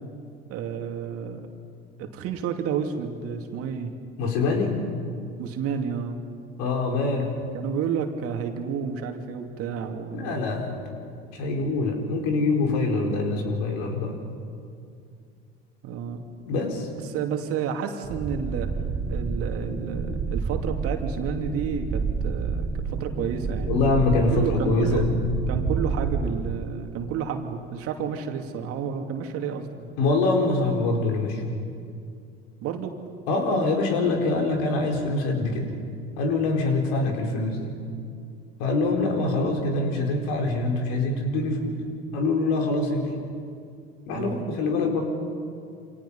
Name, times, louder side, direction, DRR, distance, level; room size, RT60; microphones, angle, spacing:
voice 1, 0.5-1.5 2.0-3.9 5.4-6.2 7.5-10.4 15.8-16.2 17.0-18.7 19.1-23.7 24.3-25.1 25.5-29.9 32.6-33.0 44.1-44.8, right 7 dB, 50° right, 4 dB, 2.7 m, -31 dB
voice 2, 4.2-4.8 6.6-7.4 10.1-10.7 11.4-14.4 16.5-16.9 23.7-25.1 30.0-31.6 33.3-35.7 36.2-37.7 38.6-41.8 42.1-43.1 44.1-45.0, left 3 dB, 60° left, 2 dB, 4.8 m, -24 dB
sound 1, 18.0-26.5, right 5 dB, 30° right, 4.0 m, -29 dB
28.5 x 26.5 x 5.7 m, 2.3 s
figure-of-eight pair, 70°, 30 cm